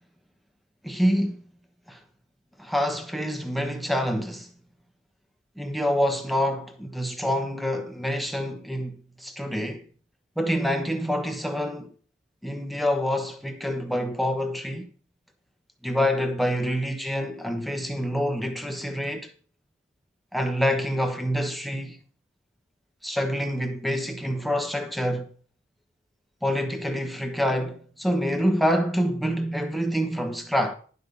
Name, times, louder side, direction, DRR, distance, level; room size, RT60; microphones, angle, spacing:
voice 1, 0.8-1.4 1.9-2.0 2.6-4.5 5.6-9.8 10.4-11.9 12.4-14.9 15.8-19.3 20.3-22.0 23.0-25.3 26.4-30.7, equal, ahead, 1.2 m, -26 dB
11.5 x 5.6 x 6.8 m
head